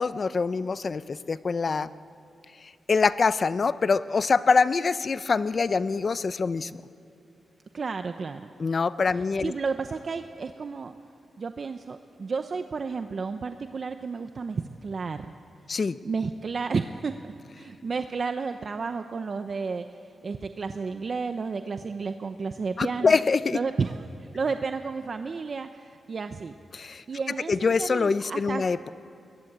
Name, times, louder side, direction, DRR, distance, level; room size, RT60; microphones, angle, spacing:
voice 1, 0.0-1.9 2.9-6.7 8.6-9.5 15.7-16.0 22.8-23.6 26.7-27.0 27.5-28.8, left 4 dB, 45° left, 15 dB, 0.6 m, -24 dB
voice 2, 7.7-8.5 9.2-11.0 11.4-15.3 16.0-17.2 17.5-19.9 20.2-23.2 23.5-26.5 27.1-28.7, right 4 dB, 45° right, 8 dB, 0.8 m, -32 dB
22.0 x 21.5 x 8.8 m, 2.6 s
wide cardioid pair, 115°, 0 cm